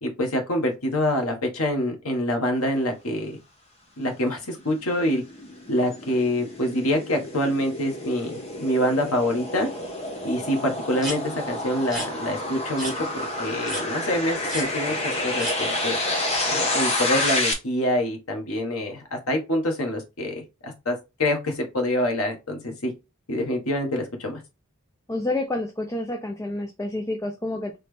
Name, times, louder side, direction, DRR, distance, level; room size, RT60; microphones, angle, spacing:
voice 1, 0.0-3.4 4.0-5.2 5.7-9.7 10.2-16.0 16.5-22.9 23.3-24.4, left 1 dB, 90° left, 3 dB, 1.4 m, -26 dB
sound 1, 4.3-17.5, left 1 dB, 30° left, 1.0 m, -29 dB
sound 2, 11.0-11.2 11.8-12.1 12.8-13.0 13.6-13.8 14.5-14.7 15.4-15.6 16.2-16.5 17.2-17.4, right 1 dB, ahead, 2.2 m, -32 dB
voice 2, 25.1-27.8, left 2 dB, 15° left, 4 dB, 0.5 m, -29 dB
4.2 x 3.2 x 3.3 m, 0.25 s
head